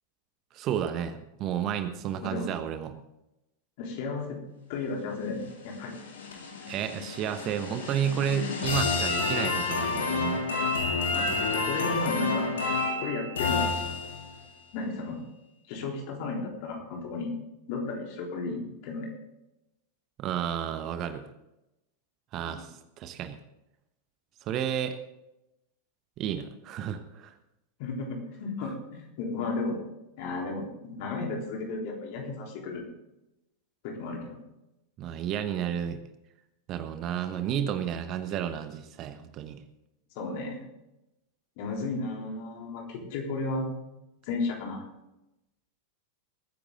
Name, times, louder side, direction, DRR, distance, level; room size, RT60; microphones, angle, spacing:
voice 1, 0.5-2.9 6.7-10.4 20.2-21.2 22.3-23.4 24.4-25.0 26.2-27.3 35.0-36.0 36.7-39.6, right 9 dB, 35° right, 10 dB, 1.1 m, -31 dB
voice 2, 2.2-2.5 3.8-4.4 4.7-6.0 11.1-12.5 13.0-13.7 14.7-15.2 15.7-17.3 17.7-19.1 22.4-22.6 27.8-29.8 30.2-32.8 33.8-34.4 40.2-40.6 41.6-43.7 44.2-44.9, left 3 dB, 45° left, 1 dB, 3.7 m, -34 dB
sound 1, 5.5-14.4, left 3 dB, 65° left, 2.8 m, -29 dB
21.0 x 10.0 x 3.8 m, 0.91 s
figure-of-eight pair, 90°, 0 cm